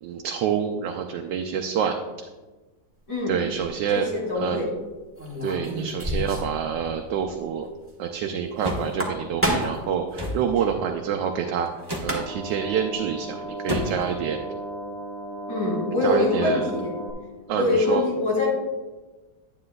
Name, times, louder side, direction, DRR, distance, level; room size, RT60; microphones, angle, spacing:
voice 1, 0.0-2.0 3.3-4.1 4.4-4.7 5.4-7.7 8.0-11.7 12.0-14.4 16.0-16.6 17.5-18.0, right 7 dB, 80° right, 3 dB, 1.3 m, -27 dB
sound 1, 3.3-3.7 5.2-6.6 6.9-7.0 7.3-7.4 8.8-9.9 11.7-11.8 12.0-12.5, equal, 10° right, 1.1 m, -28 dB
voice 2, 3.9-4.6 15.5-16.9 17.5-18.5, left 2 dB, 65° left, -4 dB, 3.8 m, -24 dB
sound 2, 8.6-8.9 10.1-10.4 11.8-12.2 13.7-14.1, left 1 dB, 25° right, 0.6 m, -29 dB
sound 3, 12.1-17.1, right 1 dB, 40° right, 1.5 m, -36 dB
9.7 x 9.6 x 2.3 m, 1.2 s
omnidirectional pair, 2.0 m